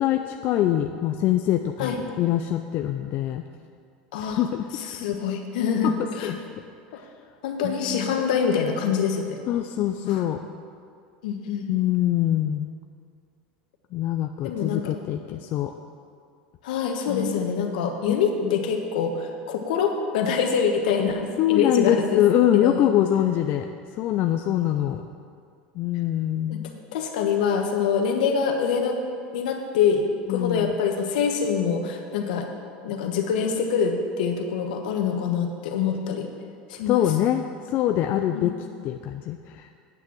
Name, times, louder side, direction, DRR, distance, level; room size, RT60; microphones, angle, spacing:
voice 1, 0.0-3.4 4.3-4.6 5.8-5.9 6.2-6.4 7.0-7.1 7.6-8.2 9.5-10.4 11.7-12.8 13.9-15.7 17.1-17.4 18.1-18.2 18.4-18.6 21.4-23.7 23.9-25.0 25.8-26.8 30.3-30.8 36.9-38.5 38.8-39.7, left 12 dB, 50° left, 5 dB, 0.5 m, -24 dB
voice 2, 4.1-4.4 4.7-6.3 7.4-9.4 10.0-10.2 11.2-11.6 14.4-14.9 16.6-22.2 22.5-22.9 26.5-26.6 26.9-29.0 29.3-30.0 30.3-32.5 32.8-36.3 36.7-37.0 38.3-38.5, left 6 dB, 80° left, 3 dB, 1.3 m, -25 dB
9.1 x 6.0 x 7.5 m, 2.3 s
supercardioid pair, 110°, 5 cm